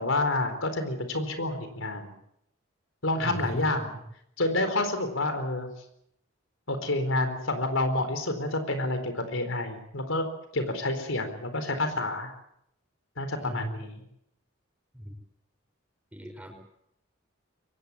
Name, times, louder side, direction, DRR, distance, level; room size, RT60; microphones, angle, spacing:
voice 1, 0.0-2.1 3.0-4.0 4.4-5.7 6.7-10.2 10.5-12.3 13.2-14.0, left 2 dB, 80° left, 8 dB, 4.3 m, -29 dB
voice 2, 3.2-3.8 13.3-13.7 14.9-15.1 16.1-16.5, equal, 5° right, 4 dB, 5.7 m, -38 dB
24.0 x 18.5 x 8.6 m, 0.77 s
head